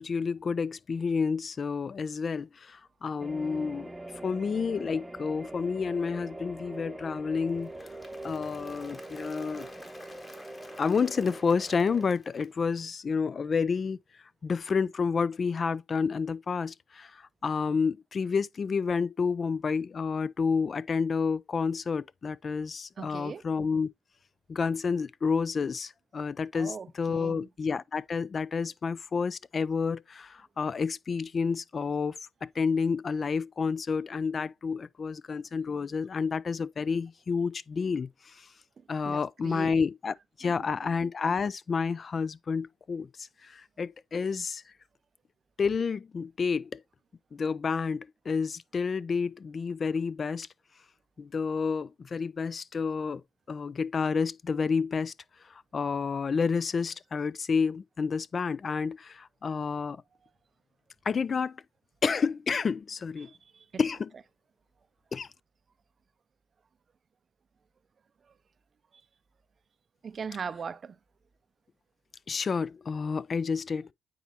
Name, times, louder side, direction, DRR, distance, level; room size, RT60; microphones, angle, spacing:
voice 1, 0.0-3.9 4.2-7.7 8.2-9.7 10.8-14.0 14.4-23.9 24.5-38.5 38.9-44.6 45.6-46.8 47.3-50.5 51.2-53.2 53.5-55.1 55.4-60.0 61.1-61.6 62.0-63.3 63.8-64.1 65.1-65.3 72.3-73.9, left 5 dB, 40° left, 0.3 m, -30 dB
sound 1, 3.2-12.1, right 2 dB, 10° right, 0.8 m, -43 dB
Applause / Crowd, 7.5-12.8, left 2 dB, 25° left, 1.4 m, -52 dB
voice 2, 23.0-23.4 26.5-27.5 39.0-39.8 40.4-40.9 63.2-63.7 70.0-71.0, right 6 dB, 45° right, 0.5 m, -40 dB
9.3 x 4.1 x 2.8 m
cardioid pair, 90°, 0 cm